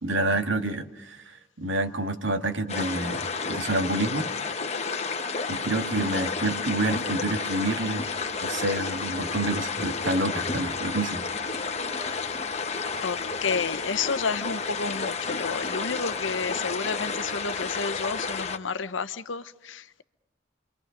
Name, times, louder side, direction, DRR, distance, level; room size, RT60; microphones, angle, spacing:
voice 1, 0.0-4.3 5.5-8.1 8.4-11.2, right 2 dB, 75° right, 2.0 m, -28 dB
sound 1, 2.7-18.6, left 4 dB, 35° left, 1.3 m, -31 dB
voice 2, 13.0-20.0, left 5 dB, 80° left, 0.9 m, -31 dB
29.0 x 24.5 x 5.2 m
head